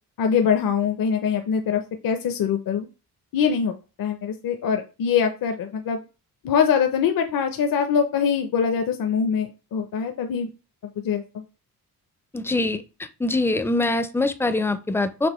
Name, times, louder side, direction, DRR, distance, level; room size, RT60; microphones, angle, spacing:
voice 1, 0.2-2.9 3.3-3.7 4.0-6.0 6.4-10.5 11.0-11.4, left 7 dB, 65° left, 6 dB, 0.6 m, -23 dB
voice 2, 12.3-12.8 13.2-15.3, left 2 dB, 5° left, 11 dB, 0.4 m, -23 dB
6.1 x 2.5 x 3.0 m, 0.32 s
cardioid pair, 90°, 38 cm